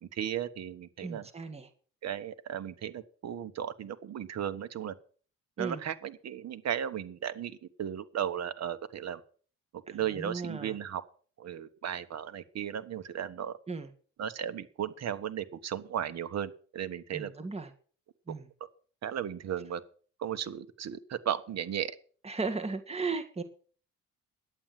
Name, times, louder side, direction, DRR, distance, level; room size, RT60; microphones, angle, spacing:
voice 1, 0.0-1.3 2.0-4.9 5.6-9.2 9.7-11.0 11.4-13.6 14.2-17.3 19.0-19.8 20.2-22.0, right 9 dB, 60° right, 13 dB, 1.3 m, -35 dB
voice 2, 1.0-1.7 5.6-5.8 10.1-10.7 13.7-13.9 17.1-17.7 18.3-18.4 22.2-23.4, right 4 dB, 20° right, 6 dB, 1.8 m, -35 dB
11.0 x 8.8 x 7.6 m, 0.43 s
cardioid pair, 90°, 30 cm